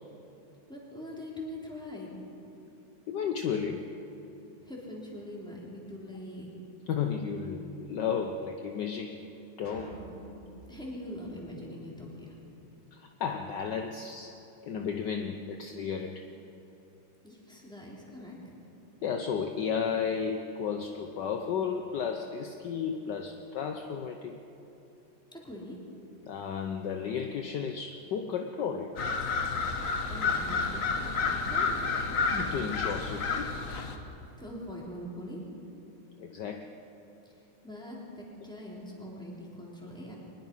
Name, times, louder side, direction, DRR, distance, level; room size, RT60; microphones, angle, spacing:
voice 1, 0.7-2.1 4.6-6.5 10.7-12.4 17.2-18.5 25.3-25.8 30.1-31.9 34.4-35.4 37.2-40.2, left 1 dB, ahead, -4 dB, 3.9 m, -43 dB
voice 2, 3.1-3.9 6.9-9.3 9.6-10.0 12.9-14.4 14.6-16.3 19.0-24.4 26.3-29.2 32.3-33.5 36.2-36.7, left 6 dB, 65° left, 4 dB, 1.4 m, -33 dB
sound 1, 9.6-12.1, right 1 dB, 25° right, 6.6 m, -48 dB
sound 2, 29.0-34.0, left 4 dB, 45° left, 1.5 m, -30 dB
23.5 x 20.5 x 5.6 m, 2.9 s
omnidirectional pair, 2.3 m